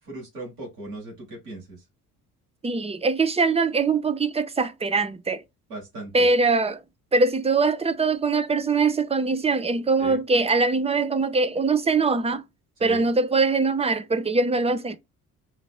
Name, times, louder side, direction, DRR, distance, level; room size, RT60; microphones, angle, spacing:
voice 1, 0.0-1.8 5.7-6.3 10.0-10.2 12.8-13.0, right 2 dB, 80° right, 1.9 m, -38 dB
voice 2, 2.6-5.4 6.1-6.8 7.1-12.4 12.8-15.0, right 4 dB, 15° right, 0.6 m, -22 dB
5.5 x 2.9 x 2.3 m
figure-of-eight pair, 45°, 45 cm